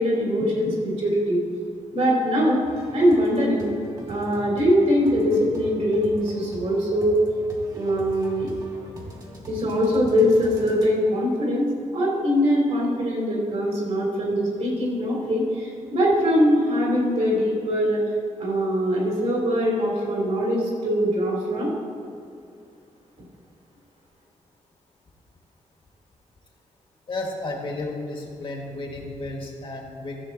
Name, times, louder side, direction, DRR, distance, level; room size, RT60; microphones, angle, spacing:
voice 1, 0.0-1.4 1.9-2.6 2.9-3.7 4.1-7.2 7.7-8.5 9.5-11.6 11.9-18.0 18.4-21.7, equal, 65° right, -2 dB, 2.7 m, -22 dB
sound 1, 2.6-10.9, right 1 dB, 30° right, 1.4 m, -42 dB
voice 2, 27.1-30.2, left 2 dB, 40° left, 1 dB, 1.4 m, -32 dB
14.0 x 6.9 x 3.8 m, 2.5 s
wide cardioid pair, 170°, 13 cm